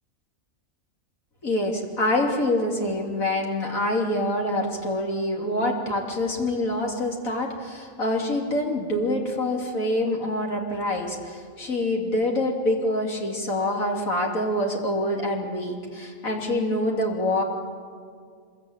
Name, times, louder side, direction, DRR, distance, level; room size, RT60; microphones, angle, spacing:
voice 1, 1.4-17.4, left 1 dB, 85° left, 0 dB, 3.5 m, -26 dB
25.5 x 22.0 x 8.9 m, 2.1 s
omnidirectional pair, 1.4 m